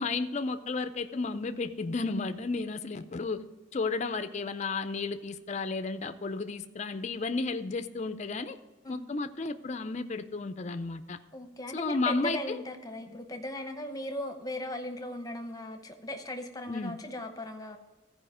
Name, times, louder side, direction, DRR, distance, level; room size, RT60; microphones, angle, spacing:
voice 1, 0.0-3.4 3.7-8.6 8.9-11.2 11.7-12.6 16.7-17.0, left 3 dB, 35° left, 10 dB, 0.5 m, -33 dB
voice 2, 11.3-17.8, left 1 dB, 20° left, 6 dB, 0.9 m, -38 dB
14.5 x 5.0 x 4.9 m, 1.2 s
head